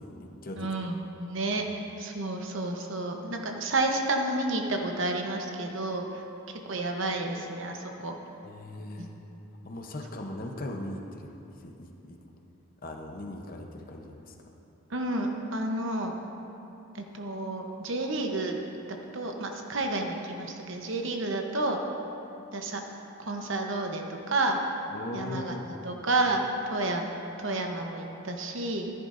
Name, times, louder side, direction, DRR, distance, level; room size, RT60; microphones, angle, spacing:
voice 1, 0.0-0.7 8.4-9.1 9.6-11.3 11.6-12.2 12.8-14.3 24.9-25.7, left 1 dB, 40° left, 3 dB, 0.8 m, -39 dB
voice 2, 0.5-1.6 2.0-6.1 6.6-8.2 14.9-16.2 16.9-18.6 19.1-21.8 22.5-22.8 23.2-24.6 25.1-26.4 26.7-27.1 27.4-28.9, right 2 dB, 60° right, 3 dB, 0.9 m, -30 dB
14.0 x 10.5 x 2.6 m, 2.9 s
head